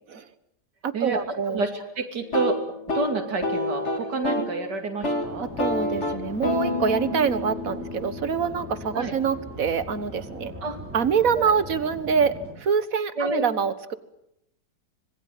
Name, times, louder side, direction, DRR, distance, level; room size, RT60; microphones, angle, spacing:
voice 1, 0.8-1.6 5.4-10.5 10.9-13.9, right 6 dB, 55° right, 13 dB, 1.8 m, -25 dB
voice 2, 1.5-2.6 2.9-5.5 9.0-9.1 10.6-10.8 11.4-11.5 13.2-13.5, right 3 dB, 90° right, 4 dB, 3.3 m, -28 dB
sound 1, 2.2-4.6 4.9-5.3 5.6-9.4, left 2 dB, 40° left, 3.0 m, -29 dB
sound 2, 5.2-12.5, equal, 5° right, 5.6 m, -40 dB
26.5 x 20.0 x 9.2 m, 0.80 s
omnidirectional pair, 1.8 m